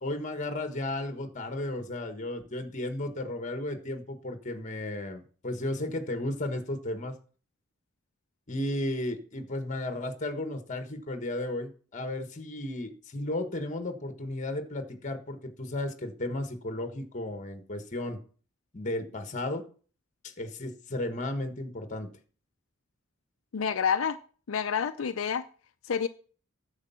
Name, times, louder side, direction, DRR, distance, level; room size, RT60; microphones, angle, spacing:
voice 1, 0.0-7.1 8.5-18.2 18.7-19.6 20.2-22.1, left 1 dB, 40° left, 7 dB, 1.4 m, -34 dB
voice 2, 23.5-24.2 24.5-25.4 25.9-26.1, left 7 dB, 80° left, 9 dB, 0.5 m, -28 dB
9.8 x 7.2 x 5.7 m, 0.42 s
head